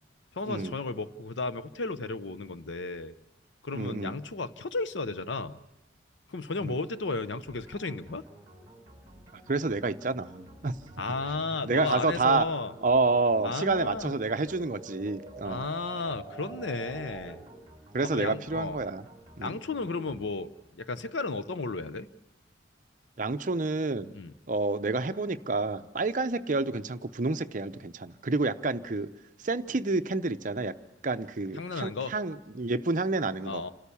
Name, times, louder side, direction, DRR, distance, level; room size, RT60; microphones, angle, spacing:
voice 1, 0.3-3.1 3.6-5.6 6.3-8.2 11.0-12.7 13.4-14.1 15.4-17.4 18.1-18.8 19.4-20.5 20.8-22.1 24.1-24.3 31.6-32.1 33.4-33.7, left 3 dB, 75° left, 13 dB, 0.7 m, -33 dB
voice 2, 3.7-4.2 6.6-6.8 9.5-10.7 11.6-12.5 12.8-15.7 17.9-19.0 19.4-19.6 23.2-24.1 24.5-29.1 29.4-30.8 31.0-33.6, right 3 dB, 40° right, 11 dB, 0.6 m, -29 dB
sound 1, 7.5-20.8, right 1 dB, 20° right, 3.3 m, -54 dB
sound 2, 8.4-17.7, right 3 dB, 5° left, 2.2 m, -50 dB
sound 3, 10.8-17.6, right 1 dB, 40° left, 2.0 m, -53 dB
29.0 x 13.0 x 7.0 m, 1.0 s
head